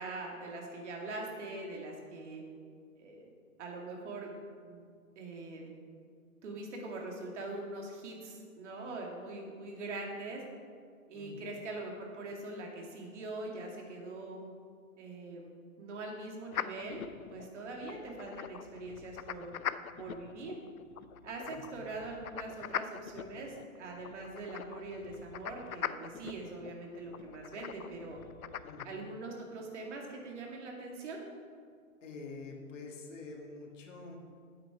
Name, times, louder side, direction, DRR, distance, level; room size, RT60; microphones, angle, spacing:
voice 1, 0.0-2.4 3.0-3.3 3.6-4.3 4.6-4.8 5.2-5.7 6.4-10.4 11.1-14.4 15.0-15.5 15.8-17.0 17.3-19.6 20.0-20.6 21.2-28.2 28.8-31.2, right 2 dB, 55° right, 0 dB, 2.3 m, -42 dB
voice 2, 11.1-11.5 21.5-21.9 28.6-29.0 32.0-34.2, left 3 dB, 60° left, 0 dB, 2.0 m, -47 dB
sound 1, 16.5-28.9, left 9 dB, 80° left, 0.6 m, -43 dB
8.9 x 8.3 x 4.8 m, 2.1 s
figure-of-eight pair, 125°, 43 cm